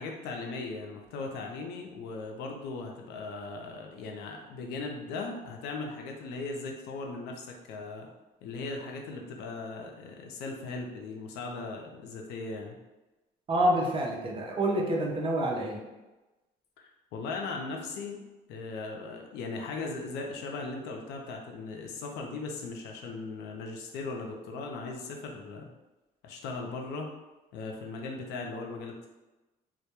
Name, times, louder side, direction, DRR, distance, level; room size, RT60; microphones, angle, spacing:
voice 1, 0.0-8.1 8.4-12.8 16.8-18.2 18.5-25.7 26.2-27.1 27.5-29.1, left 3 dB, 80° left, 2 dB, 0.4 m, -38 dB
voice 2, 13.5-15.8, right 1 dB, 30° right, -1 dB, 0.5 m, -27 dB
2.1 x 2.1 x 2.9 m, 1.1 s
cardioid pair, 110°, 17 cm